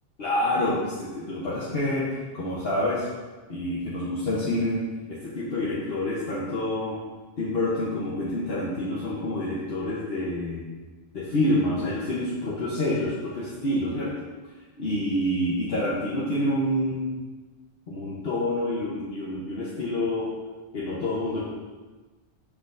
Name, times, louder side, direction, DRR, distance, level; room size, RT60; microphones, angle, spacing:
voice 1, 0.2-2.1 2.3-3.1 3.5-4.8 5.1-7.0 7.4-10.6 11.1-14.1 14.8-17.1 17.9-20.3 20.7-21.4, left 1 dB, 70° left, -7 dB, 1.2 m, -27 dB
6.1 x 6.1 x 2.6 m, 1.3 s
omnidirectional pair, 1.0 m